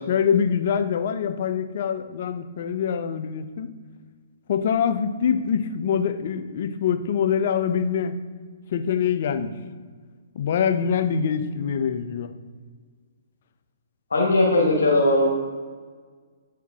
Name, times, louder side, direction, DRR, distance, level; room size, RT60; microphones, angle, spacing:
voice 1, 0.1-3.7 4.5-8.2 8.7-9.5 10.4-12.3, left 7 dB, 55° left, 10 dB, 0.5 m, -24 dB
voice 2, 14.1-15.2, left 2 dB, 80° left, -3 dB, 1.3 m, -19 dB
8.2 x 4.6 x 3.5 m, 1.5 s
hypercardioid pair, 125°, 0 cm